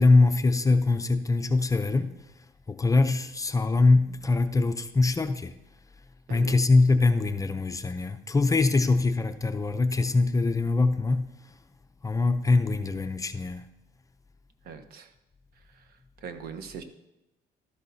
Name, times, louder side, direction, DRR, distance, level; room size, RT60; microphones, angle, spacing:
voice 1, 0.0-2.1 2.7-5.5 6.3-11.3 12.0-13.6, left 3 dB, 20° left, 0.5 m, -23 dB
voice 2, 14.6-15.1 15.7-15.9 16.2-16.8, right 6 dB, 65° right, 1.0 m, -41 dB
13.0 x 12.0 x 2.7 m
cardioid pair, 110°, 17 cm